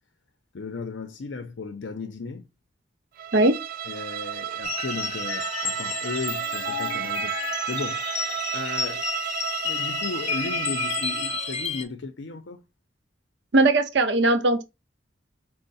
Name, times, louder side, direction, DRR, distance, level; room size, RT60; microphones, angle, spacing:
voice 1, 0.5-2.5 3.9-7.4 7.7-9.1 9.6-12.6, left 4 dB, 75° left, 0.5 m, -35 dB
Bowed string instrument, 3.2-11.5, right 11 dB, 50° right, 0.3 m, -32 dB
sound 1, 4.6-11.8, left 5 dB, 35° left, 0.7 m, -31 dB
voice 2, 13.5-14.6, right 2 dB, 65° right, 0.8 m, -19 dB
5.4 x 2.0 x 4.0 m
head